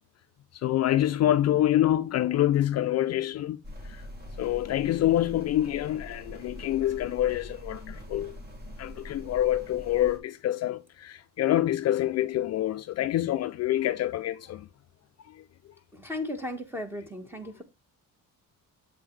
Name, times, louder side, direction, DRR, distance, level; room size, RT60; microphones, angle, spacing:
voice 1, 0.6-3.6 3.9-4.0 4.4-8.3 8.8-14.7, left 13 dB, 50° left, 0.4 m, -26 dB
sound 1, 3.6-10.2, left 1 dB, 30° right, 1.7 m, -43 dB
voice 2, 15.9-17.6, left 1 dB, 5° right, 1.3 m, -36 dB
7.8 x 5.5 x 3.2 m
cardioid pair, 155°, 34 cm